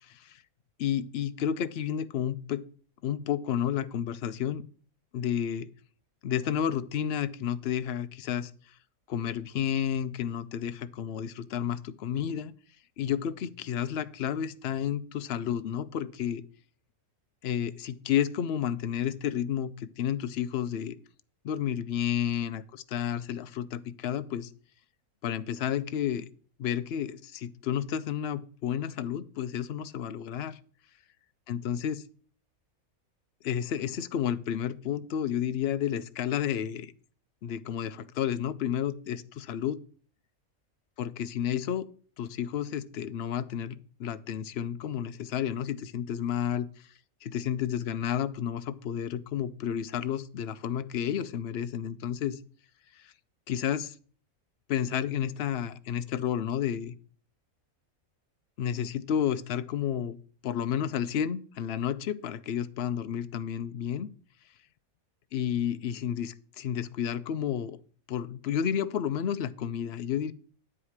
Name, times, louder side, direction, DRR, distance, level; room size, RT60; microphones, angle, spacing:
voice 1, 0.1-0.4 0.8-2.6 3.0-4.6 5.1-5.7 6.2-8.5 9.1-12.5 13.0-16.4 17.4-21.0 21.4-24.5 25.2-26.3 26.6-30.6 31.5-32.0 33.4-36.9 37.4-39.8 41.0-41.9 42.2-46.7 47.2-52.4 52.9-53.1 53.5-53.9 54.7-57.0 58.6-60.2 60.4-64.1 65.3-67.8 68.1-70.3, left 9 dB, 60° left, 13 dB, 0.7 m, -31 dB
9.8 x 4.9 x 7.1 m, 0.44 s
omnidirectional pair, 1.5 m